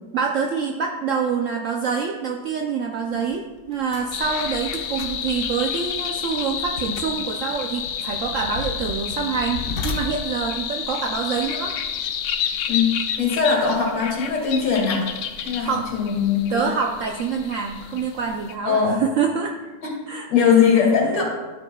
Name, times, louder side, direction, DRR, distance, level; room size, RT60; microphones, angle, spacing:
voice 1, 0.1-11.7 15.6-15.9 16.5-19.5 20.1-20.3, right 6 dB, 80° right, 2 dB, 0.7 m, -26 dB
sound 1, 3.2-3.4 3.7-12.0, left 4 dB, 55° left, 1.2 m, -36 dB
sound 2, 4.1-18.5, left 8 dB, 85° left, 1.4 m, -30 dB
voice 2, 12.7-15.0 15.4-16.7 18.6-19.0 19.8-20.0 20.3-21.2, left 6 dB, 70° left, -2 dB, 2.7 m, -20 dB
13.0 x 6.9 x 2.3 m, 1.3 s
omnidirectional pair, 2.0 m